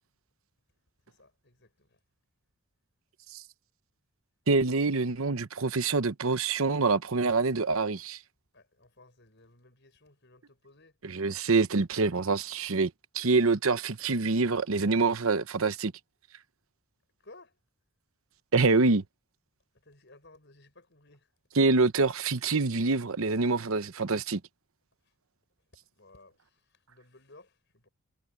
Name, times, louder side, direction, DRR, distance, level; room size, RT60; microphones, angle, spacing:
voice 1, 1.1-2.0 8.5-11.0 17.2-17.6 19.8-21.3 25.9-27.9, left 2 dB, 50° left, 6.9 m, -57 dB
voice 2, 4.5-8.2 11.0-15.9 18.5-19.0 21.6-24.4, right 3 dB, 70° right, 0.9 m, -26 dB
head